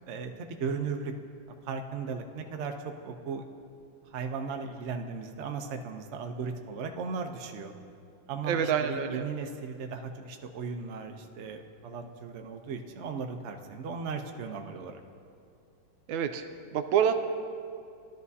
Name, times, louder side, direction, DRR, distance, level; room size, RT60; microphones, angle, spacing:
voice 1, 0.1-1.1 1.6-3.4 4.0-7.7 8.3-15.0, right 5 dB, 65° right, 4 dB, 0.7 m, -37 dB
voice 2, 8.5-9.3 16.1-16.4 16.7-17.1, right 8 dB, 85° right, 7 dB, 1.4 m, -27 dB
18.0 x 12.0 x 2.8 m, 2.4 s
omnidirectional pair, 2.2 m